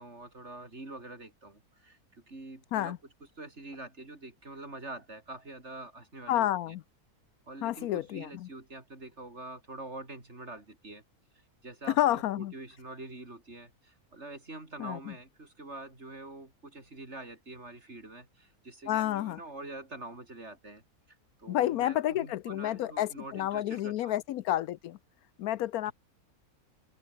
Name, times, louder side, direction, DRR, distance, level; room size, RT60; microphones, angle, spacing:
voice 1, 0.0-2.9 3.4-6.7 7.5-11.0 11.6-20.8 21.4-24.2 25.8-25.9, right 2 dB, 45° right, 4.7 m, -45 dB
voice 2, 6.3-6.8 7.6-8.5 12.0-12.5 14.8-15.1 18.9-19.4 21.5-25.0 25.4-25.9, left 13 dB, 75° left, 1.0 m, -30 dB
open air
omnidirectional pair, 1.6 m